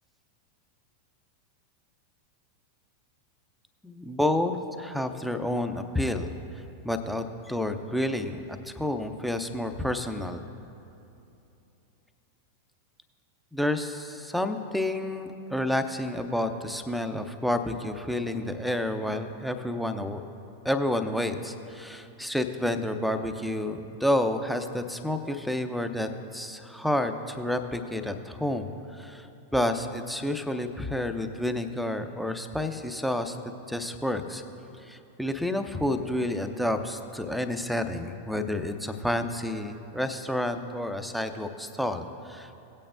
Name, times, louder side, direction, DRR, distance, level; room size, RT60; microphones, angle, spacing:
voice 1, 3.8-10.4 13.5-20.2 20.6-33.4 33.7-34.4 34.8-42.5, left 1 dB, ahead, 7 dB, 0.6 m, -30 dB
17.5 x 8.6 x 2.5 m, 2.8 s
figure-of-eight pair, 90°, 0 cm